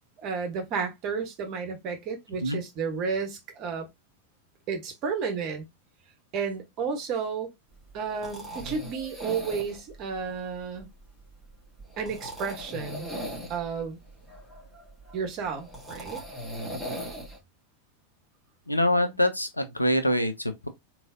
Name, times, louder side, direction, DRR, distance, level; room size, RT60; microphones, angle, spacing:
voice 1, 0.2-3.9 4.7-5.6 6.3-7.5 7.9-10.9 12.0-13.1 13.5-14.0 15.1-16.2, right 5 dB, 40° right, 1.1 m, -32 dB
sound 1, 7.7-17.4, equal, ahead, 1.8 m, -40 dB
voice 2, 18.7-20.7, left 1 dB, 85° left, 0.6 m, -25 dB
3.7 x 3.0 x 2.6 m
figure-of-eight pair, 90°, 0 cm